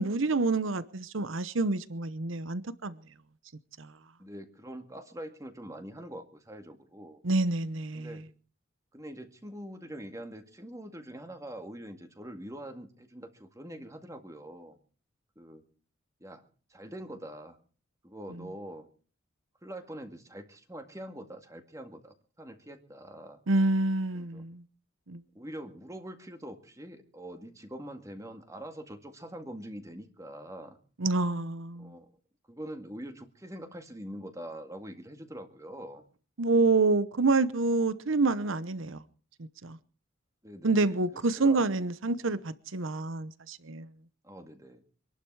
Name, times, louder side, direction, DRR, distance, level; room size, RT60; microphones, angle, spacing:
voice 1, 0.0-2.9 3.8-3.9 7.2-8.1 23.5-24.6 25.1-25.2 31.0-31.9 36.4-39.0 39.6-39.8 40.6-43.9, right 3 dB, 75° right, 0.9 m, -27 dB
voice 2, 4.2-7.2 7.9-8.2 8.9-14.8 15.4-15.6 16.2-16.4 16.7-17.6 18.0-18.9 19.6-23.4 24.1-24.4 25.3-30.8 31.8-32.1 32.5-36.0 40.4-41.6 42.2-42.4 44.2-44.8, right 1 dB, 15° right, 2.0 m, -44 dB
25.5 x 11.5 x 4.7 m
head